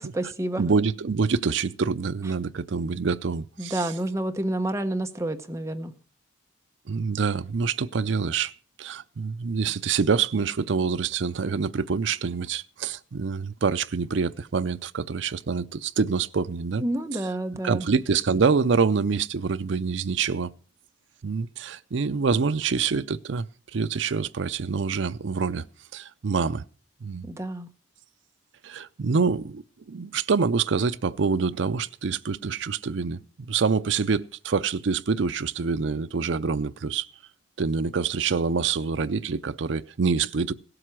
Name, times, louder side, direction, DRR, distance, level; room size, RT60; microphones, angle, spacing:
voice 1, 0.0-0.6 3.6-5.9 16.8-17.9 27.2-27.7, right 1 dB, 15° right, 1.0 m, -29 dB
voice 2, 0.6-3.9 6.9-8.5 8.8-16.8 17.1-17.2 17.6-20.5 21.2-23.5 23.7-25.7 25.9-26.6 27.0-27.3 28.6-29.6 29.9-37.1 37.6-40.5, right 5 dB, 70° right, 0.5 m, -26 dB
16.5 x 7.8 x 6.1 m
head